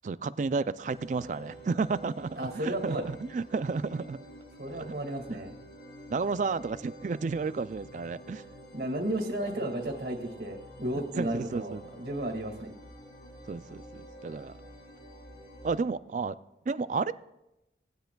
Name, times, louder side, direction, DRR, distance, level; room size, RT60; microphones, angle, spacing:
voice 1, 0.0-4.2 4.8-4.9 5.3-5.4 6.1-8.4 11.2-11.9 13.5-14.6 15.6-16.4 16.7-17.1, right 4 dB, 45° right, 15 dB, 0.3 m, -32 dB
sound 1, 0.8-15.8, equal, 65° left, 2.1 m, -49 dB
voice 2, 2.4-3.1 4.6-5.5 8.7-12.7, right 1 dB, 60° right, 1 dB, 2.1 m, -33 dB
18.0 x 10.5 x 2.3 m, 0.91 s
head